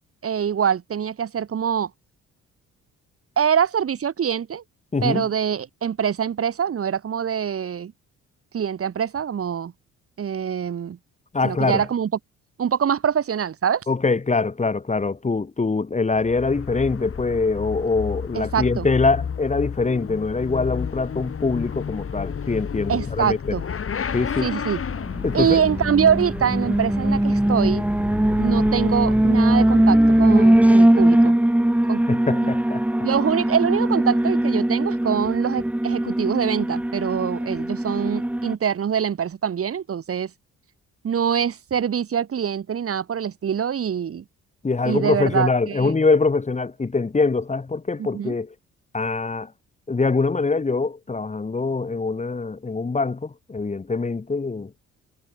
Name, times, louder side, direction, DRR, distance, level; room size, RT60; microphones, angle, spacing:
voice 1, 0.2-1.9 3.4-4.6 5.0-7.9 8.5-9.7 10.2-11.0 11.4-12.1 12.6-13.9 18.3-18.9 22.9-23.6 24.4-24.8 25.3-27.9 28.4-31.4 31.9-32.0 33.0-40.3 41.0-44.2 44.8-45.9 48.0-48.3, right 8 dB, 50° right, 2.2 m, -24 dB
voice 2, 4.9-5.3 11.3-11.8 13.9-23.6 24.1-24.5 25.2-25.6 32.1-32.8 44.6-48.5 48.9-49.5 49.9-54.7, left 4 dB, 25° left, 2.0 m, -23 dB
Motorcycle / Accelerating revving vroom, 16.1-29.9, left 7 dB, 45° left, 6.6 m, -32 dB
Alarm, 25.1-38.5, right 1 dB, 5° right, 1.1 m, -20 dB
cardioid pair, 90°, 30 cm